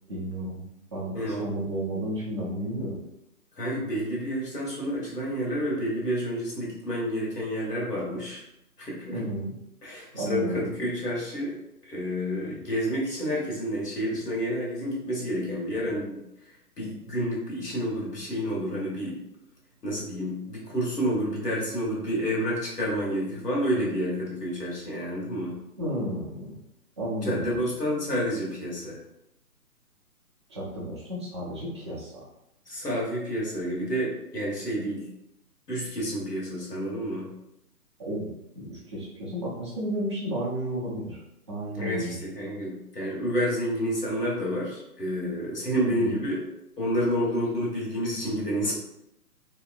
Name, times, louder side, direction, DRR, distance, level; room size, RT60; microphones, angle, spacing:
voice 1, 0.1-0.6 0.9-3.0 9.1-9.5 10.1-10.7 25.8-26.6 27.0-27.6 30.5-32.3 38.0-38.3 38.5-41.2 41.5-42.2 45.9-46.2, right 1 dB, 20° right, -8 dB, 0.5 m, -32 dB
voice 2, 1.1-1.5 3.5-8.5 8.8-9.3 9.8-11.5 11.8-16.2 16.5-19.2 19.8-25.6 27.2-29.0 32.7-35.1 35.7-37.3 41.8-46.4 46.8-48.7, equal, 90° left, -4 dB, 1.2 m, -29 dB
3.1 x 2.8 x 2.4 m, 0.86 s
figure-of-eight pair, 135°, 47 cm